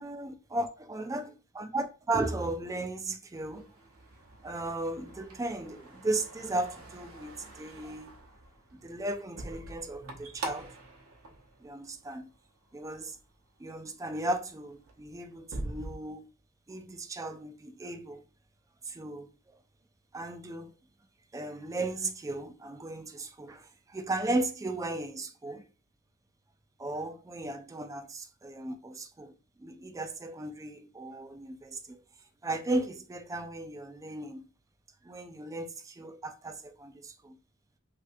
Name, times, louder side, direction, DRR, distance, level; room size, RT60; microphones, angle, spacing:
voice 1, 0.0-3.7 4.4-8.1 8.7-10.7 11.6-12.3 12.7-13.2 13.6-16.2 16.7-18.2 18.8-19.6 20.1-20.7 21.3-25.6 26.8-29.3 29.6-32.0 32.4-34.5 35.0-37.4, right 2 dB, 15° right, 0.3 m, -36 dB
sound 1, 3.3-12.3 12.7-13.2 13.7-13.9 14.3-15.9, right 2 dB, 75° right, 0.8 m, -45 dB
3.3 x 2.7 x 2.5 m
head